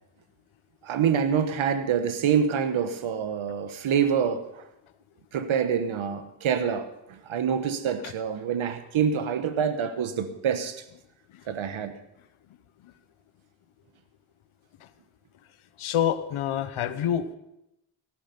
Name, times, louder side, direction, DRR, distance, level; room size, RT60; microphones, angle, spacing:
voice 1, 0.8-4.7 5.3-10.8 11.5-11.9, right 7 dB, 75° right, 10 dB, 1.3 m, -26 dB
voice 2, 15.8-17.4, left 9 dB, 85° left, 13 dB, 1.0 m, -27 dB
17.5 x 10.0 x 5.4 m, 0.86 s
cardioid pair, 50°, 48 cm